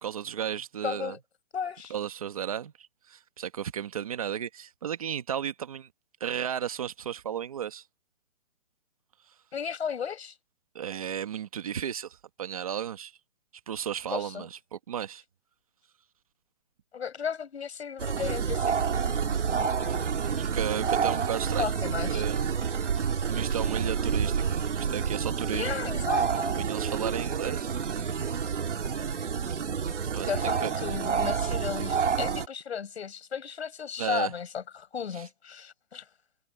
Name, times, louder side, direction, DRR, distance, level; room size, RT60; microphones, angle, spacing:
voice 1, 0.0-1.1 1.9-5.9 6.2-7.8 10.7-13.1 13.7-15.2 20.2-21.7 22.0-22.4 22.9-25.7 26.3-27.8 28.2-28.3 30.1-30.7 34.0-34.3 35.1-35.3, right 9 dB, 30° right, 1.4 m, -34 dB
voice 2, 0.8-1.2 1.5-2.0 9.5-10.4 14.1-14.5 16.9-19.4 21.6-22.2 25.5-26.6 28.7-29.1 30.3-36.0, left 7 dB, 60° left, 6.8 m, -35 dB
sound 1, 18.0-32.5, right 6 dB, 70° right, 3.0 m, -29 dB
hypercardioid pair, 175°, 37 cm